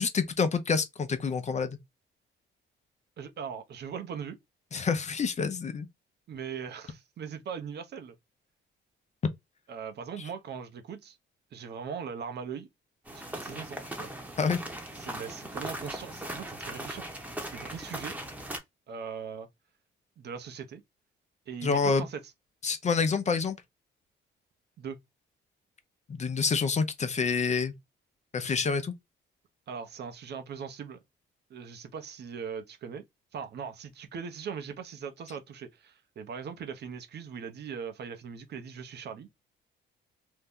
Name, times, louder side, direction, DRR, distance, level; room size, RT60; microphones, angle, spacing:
voice 1, 0.0-1.8 4.7-5.9 14.4-14.6 21.6-22.0 22.6-23.6 26.1-27.7 28.3-28.9, left 5 dB, 35° left, 0.6 m, -27 dB
voice 2, 3.2-4.4 6.3-8.1 9.7-11.2 11.5-12.7 13.1-14.1 14.9-17.1 17.5-18.2 18.9-19.5 20.2-20.8 21.5-22.2 24.8-25.0 29.7-31.0 31.5-33.0 33.3-39.3, right 6 dB, 55° right, 0.7 m, -40 dB
sound 1, 13.1-18.6, right 1 dB, 5° right, 0.9 m, -39 dB
2.7 x 2.1 x 3.5 m
cardioid pair, 90°, 20 cm